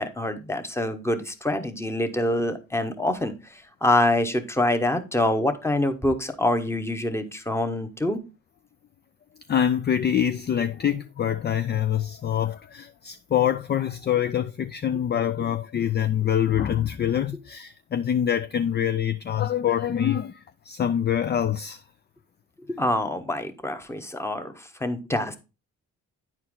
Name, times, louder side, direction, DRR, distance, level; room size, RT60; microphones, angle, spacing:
voice 1, 0.0-8.2 22.6-25.4, left 1 dB, 10° left, 1.1 m, -26 dB
voice 2, 9.5-20.4 20.6-21.8, left 9 dB, 35° left, 0.4 m, -25 dB
9.5 x 4.5 x 3.7 m
cardioid pair, 90°, 30 cm